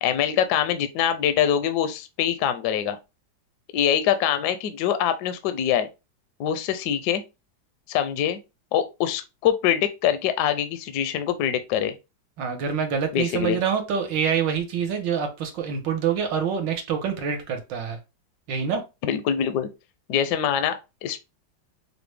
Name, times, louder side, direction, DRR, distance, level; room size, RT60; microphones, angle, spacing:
voice 1, 0.0-3.0 3.7-5.9 6.4-7.2 7.9-8.4 8.7-11.9 13.1-13.6 19.0-19.7 20.1-21.2, left 9 dB, 75° left, 1.0 m, -24 dB
voice 2, 12.4-18.0 18.5-18.8, right 7 dB, 75° right, 1.5 m, -26 dB
4.8 x 2.1 x 3.3 m
omnidirectional pair, 2.1 m